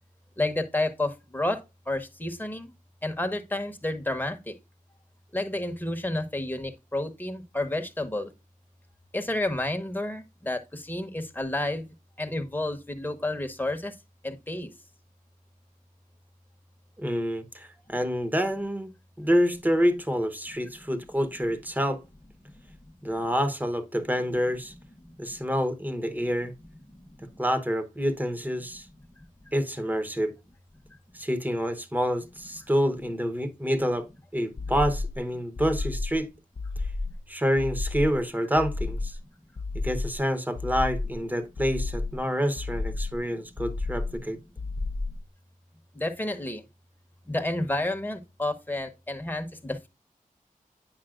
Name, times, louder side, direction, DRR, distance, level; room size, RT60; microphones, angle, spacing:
voice 1, 0.4-2.7 3.0-4.6 5.3-8.3 9.1-13.9 14.2-14.7 17.9-18.0 25.1-25.2 26.9-27.4 45.9-46.6 47.3-49.9, left 1 dB, 15° left, 1.1 m, -31 dB
voice 2, 17.0-18.9 19.2-22.0 23.0-24.7 25.2-26.5 27.4-28.9 29.5-30.3 31.1-34.1 34.3-36.3 37.3-39.2 39.8-44.4, equal, 10° right, 1.0 m, -27 dB
sound 1, 34.6-35.2 35.6-36.2 36.6-37.2 37.6-38.2 38.6-39.2 39.6-40.2 40.6-41.2 41.6-42.2 42.6-43.2 43.6-44.2 44.6-45.2, left 3 dB, 40° left, 0.5 m, -32 dB
9.0 x 5.4 x 2.5 m
wide cardioid pair, 65°, 15 cm